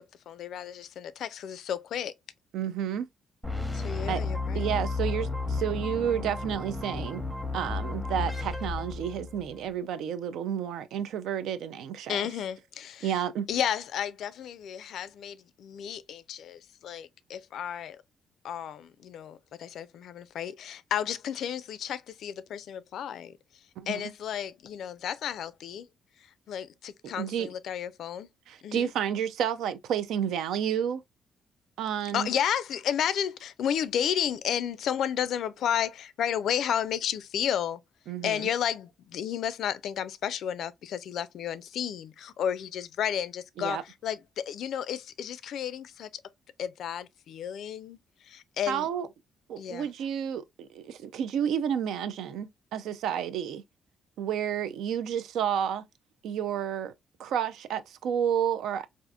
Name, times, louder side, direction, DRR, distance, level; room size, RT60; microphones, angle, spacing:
voice 1, 0.3-2.1 3.7-4.8 12.1-13.2 13.5-18.0 18.4-23.3 23.9-25.9 26.5-28.3 28.6-28.9 32.1-37.8 38.2-46.2 46.6-48.0 48.3-48.9 49.6-49.9, left 9 dB, 70° left, 0.3 m, -32 dB
voice 2, 2.5-3.1 4.1-4.2 4.5-7.2 7.5-12.3 13.0-13.5 23.8-24.1 27.0-27.5 28.5-31.0 31.8-32.3 38.1-38.5 43.6-43.8 48.7-49.1 49.5-53.6 54.2-55.8 56.2-56.9 57.2-58.9, right 9 dB, 80° right, 0.4 m, -31 dB
sound 1, 3.4-9.6, left 3 dB, ahead, 0.8 m, -33 dB
3.5 x 2.5 x 2.3 m
cardioid pair, 90°, 0 cm